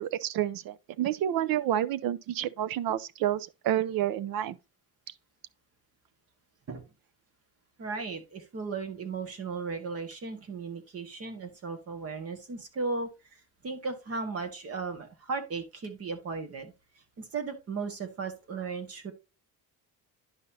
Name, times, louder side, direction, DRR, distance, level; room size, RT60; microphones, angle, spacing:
voice 1, 0.0-4.6, right 11 dB, 65° right, 0.7 m, -29 dB
voice 2, 7.8-16.7 17.2-19.1, right 4 dB, 40° right, 1.7 m, -36 dB
10.5 x 5.5 x 2.7 m
cardioid pair, 150°, 37 cm